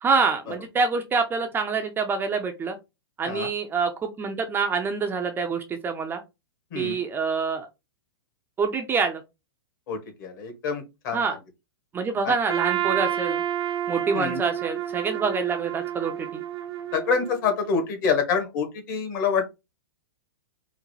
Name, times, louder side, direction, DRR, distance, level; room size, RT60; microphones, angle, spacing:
voice 1, 0.0-2.8 3.2-6.2 6.7-7.7 8.6-9.2 11.1-11.4 11.9-13.4 13.9-16.4, right 5 dB, 15° right, 5 dB, 0.4 m, -26 dB
voice 2, 9.9-11.2 12.2-12.3 14.1-14.4 16.9-19.4, left 5 dB, 50° left, 5 dB, 1.4 m, -26 dB
Trumpet, 12.5-17.6, right 11 dB, 85° right, 0.8 m, -29 dB
3.7 x 2.1 x 3.1 m, 0.24 s
hypercardioid pair, 130°, 13 cm